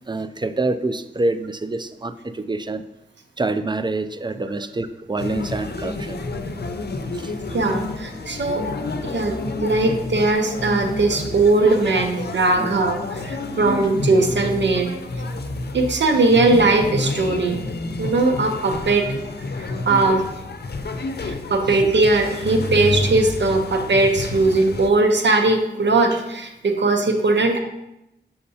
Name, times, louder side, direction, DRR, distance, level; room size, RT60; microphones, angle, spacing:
voice 1, 0.0-2.8 3.4-6.2 7.1-7.6 12.6-12.7, right 2 dB, 25° right, 11 dB, 0.4 m, -26 dB
sound 1, 5.2-24.9, left 3 dB, 65° left, 0.6 m, -29 dB
voice 2, 7.5-8.6 9.0-14.9 15.7-17.6 18.0-19.1 19.6-20.2 21.2-27.6, right 2 dB, 90° right, 4 dB, 0.6 m, -19 dB
6.4 x 5.7 x 2.7 m, 0.88 s
wide cardioid pair, 55°, 18 cm